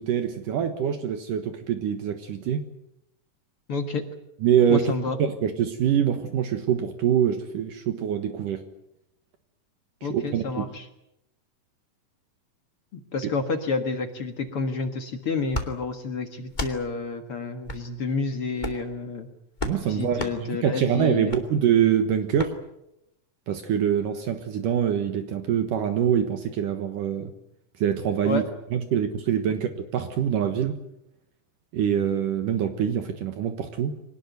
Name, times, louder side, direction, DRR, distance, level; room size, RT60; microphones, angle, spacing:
voice 1, 0.0-2.7 4.4-4.9 5.2-8.6 10.1-10.7 19.7-22.5 23.5-27.3 27.8-28.4 28.7-30.8 31.7-34.0, right 9 dB, 70° right, 7 dB, 2.9 m, -24 dB
voice 2, 3.7-4.0 4.7-5.2 10.0-10.8 13.1-19.3 19.8-21.3 28.2-28.4, left 4 dB, 50° left, 6 dB, 2.1 m, -29 dB
sound 1, 15.5-15.7 16.5-16.8 17.6-17.8 18.6-18.9 19.6-19.8 20.2-20.4 21.3-21.4 22.4-22.5, left 1 dB, 15° left, 2.0 m, -31 dB
24.5 x 19.0 x 9.3 m, 0.83 s
omnidirectional pair, 4.1 m